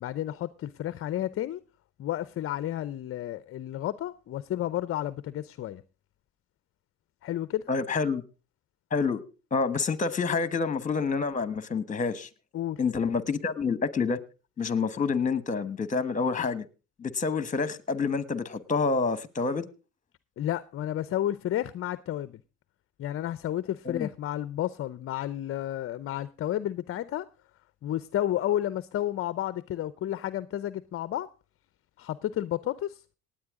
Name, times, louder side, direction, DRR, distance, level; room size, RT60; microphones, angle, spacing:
voice 1, 0.0-1.6 2.0-5.8 7.2-7.7 12.5-12.8 20.4-22.4 23.0-27.3 27.8-31.3 32.0-33.0, left 12 dB, 40° left, 0.6 m, -31 dB
voice 2, 7.7-8.2 8.9-9.2 9.5-12.3 12.8-14.2 14.6-16.7 17.0-19.7 23.8-24.1, left 4 dB, 20° left, 1.2 m, -28 dB
18.5 x 8.9 x 3.6 m
supercardioid pair, 105°, 35 cm